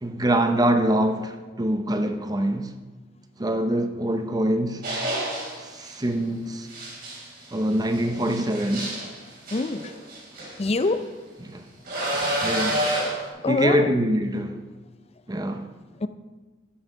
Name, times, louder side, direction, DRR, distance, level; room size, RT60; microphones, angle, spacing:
voice 1, 0.0-2.7 3.4-4.8 5.6-6.7 7.5-8.9 11.4-11.6 12.4-12.9 13.5-14.6 15.3-15.7, right 1 dB, 20° right, 0.7 m, -24 dB
sound 1, 4.8-6.0 6.7-10.9 11.9-13.3, right 1 dB, 50° right, 3.1 m, -29 dB
voice 2, 9.5-9.9 10.6-11.0 13.4-13.9 16.0-16.1, left 3 dB, 30° left, 0.5 m, -24 dB
11.0 x 5.6 x 6.2 m
head